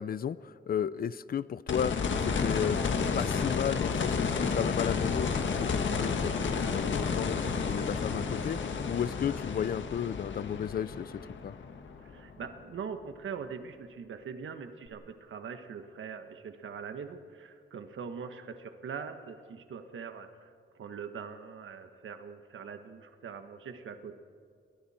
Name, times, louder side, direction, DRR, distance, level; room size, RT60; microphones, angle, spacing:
voice 1, 0.0-2.0 2.3-2.8 3.1-8.6 8.9-11.1 11.4-11.5, left 8 dB, 50° left, 18 dB, 0.5 m, -33 dB
sound 1, 1.7-12.6 14.9-15.0, left 5 dB, 70° left, 1.6 m, -31 dB
voice 2, 12.0-20.5 20.8-24.1, right 6 dB, 85° right, 8 dB, 1.4 m, -42 dB
29.5 x 21.5 x 4.3 m, 2.2 s
wide cardioid pair, 155°, 20 cm